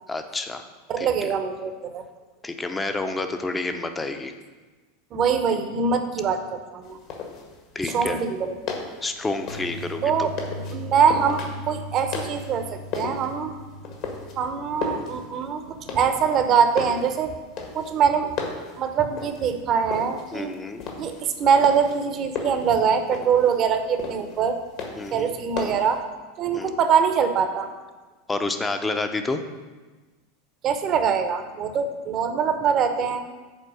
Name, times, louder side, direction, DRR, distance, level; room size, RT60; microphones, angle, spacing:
voice 1, 0.1-0.6 1.0-1.3 2.4-4.3 7.7-8.2 9.0-10.3 20.3-20.8 25.0-25.3 26.5-26.7 28.3-29.4, left 3 dB, 15° left, 7 dB, 0.7 m, -29 dB
voice 2, 0.9-2.0 5.1-7.0 7.9-8.7 10.0-10.4 10.7-12.6 12.9-13.5 14.4-17.3 17.7-18.3 18.8-20.5 21.0-24.6 25.1-26.0 26.4-27.7 30.6-33.2, right 6 dB, 40° right, 7 dB, 0.9 m, -23 dB
sound 1, 6.8-26.0, left 4 dB, 55° left, 1.6 m, -36 dB
sound 2, 9.5-14.5, equal, 80° left, 1.7 m, -38 dB
7.3 x 4.4 x 6.3 m, 1.3 s
hypercardioid pair, 90°, 0 cm